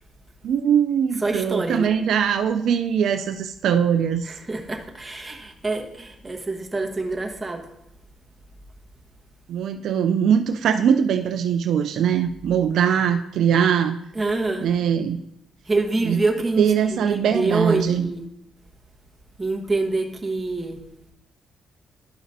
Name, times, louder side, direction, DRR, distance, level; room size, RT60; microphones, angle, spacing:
voice 1, 0.4-4.3 9.5-14.0 14.6-15.2 16.0-16.2 16.6-18.1, right 8 dB, 75° right, 7 dB, 0.4 m, -21 dB
voice 2, 1.2-1.9 4.3-7.6 14.1-14.7 15.7-16.6 16.9-18.2 19.4-20.8, right 3 dB, 20° right, 1 dB, 1.2 m, -26 dB
12.0 x 5.0 x 2.7 m, 0.80 s
cardioid pair, 90°, 0 cm